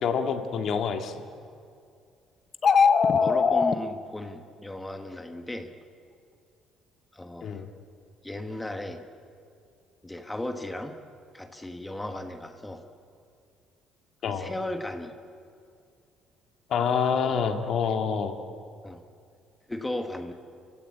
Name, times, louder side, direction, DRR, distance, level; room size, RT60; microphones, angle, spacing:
voice 1, 0.0-1.2 7.4-7.7 14.2-14.5 16.7-18.3, left 6 dB, 50° left, 5 dB, 2.0 m, -27 dB
sound 1, 2.5-3.7, left 5 dB, 35° left, 0.9 m, -20 dB
voice 2, 3.2-5.7 7.1-7.6 8.2-9.0 10.0-11.0 11.3-12.8 14.3-15.1 18.8-19.0 19.7-20.3, left 1 dB, 10° left, 6 dB, 1.3 m, -36 dB
29.5 x 16.0 x 8.7 m, 2.4 s
cardioid pair, 155°, 0 cm